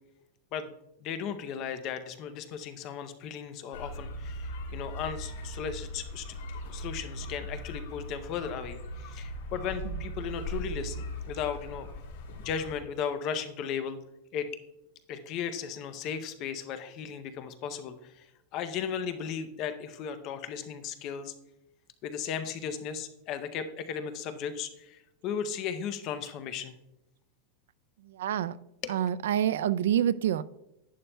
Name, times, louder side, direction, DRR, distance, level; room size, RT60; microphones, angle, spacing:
voice 1, 1.0-6.4 6.7-11.9 12.4-14.0 14.3-14.5 15.1-18.3 18.5-21.3 22.0-26.7 28.8-28.9, left 7 dB, 35° left, 10 dB, 0.5 m, -36 dB
sound 1, 3.7-12.7, equal, 80° left, 2.7 m, -39 dB
voice 2, 28.0-28.6 28.9-30.4, right 10 dB, 85° right, 16 dB, 0.4 m, -27 dB
11.0 x 10.0 x 2.2 m, 0.90 s
supercardioid pair, 170°, 0 cm